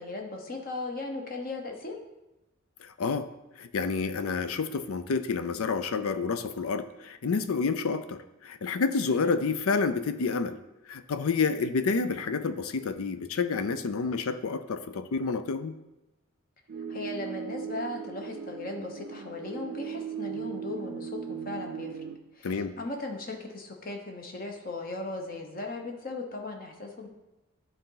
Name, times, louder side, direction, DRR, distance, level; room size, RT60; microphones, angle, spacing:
voice 1, 0.0-2.0 16.9-22.0 22.3-27.1, left 2 dB, 40° left, 3 dB, 1.0 m, -37 dB
voice 2, 2.8-3.3 3.6-10.6 10.9-15.7 22.4-22.8, left 4 dB, 85° left, 11 dB, 0.5 m, -29 dB
sound 1, 16.7-22.2, right 8 dB, 65° right, 0.5 m, -38 dB
11.0 x 3.9 x 3.9 m, 0.98 s
head